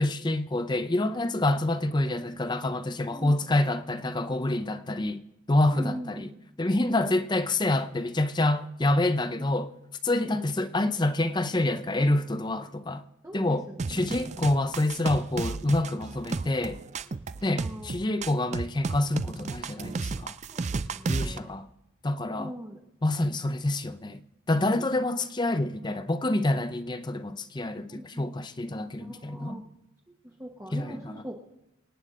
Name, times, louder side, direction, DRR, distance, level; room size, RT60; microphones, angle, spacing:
voice 1, 0.0-5.2 5.5-6.3 6.6-9.7 10.0-13.0 13.3-16.8 17.4-20.3 21.1-21.7 22.0-22.5 23.0-24.2 24.5-29.6 30.7-31.2, left 1 dB, 20° left, 0.5 m, -27 dB
voice 2, 5.7-6.4 6.9-7.1 9.4-9.5 10.2-10.5 13.2-14.3 17.6-18.2 20.5-21.5 22.4-22.8 24.8-24.9 27.9-28.3 29.0-29.6 30.2-31.4, equal, 15° right, 1.1 m, -41 dB
sound 1, 13.8-21.4, right 4 dB, 35° right, 0.4 m, -33 dB
26.0 x 9.2 x 3.7 m
head